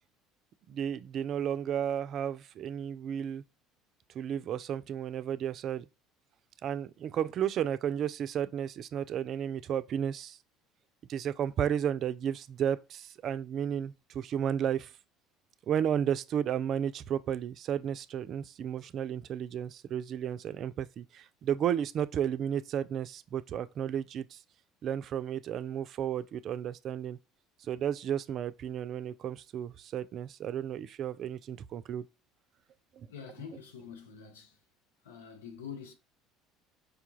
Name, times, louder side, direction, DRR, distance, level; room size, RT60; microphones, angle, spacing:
voice 1, 0.7-3.4 4.1-5.8 6.6-10.4 11.1-14.9 15.7-24.4 24.8-27.2 27.6-32.0 32.9-33.1, right 9 dB, 55° right, 0.4 m, -33 dB
voice 2, 33.1-34.6 35.0-35.9, left 7 dB, 90° left, 0.7 m, -45 dB
4.9 x 2.3 x 3.1 m
hypercardioid pair, 70°, 0 cm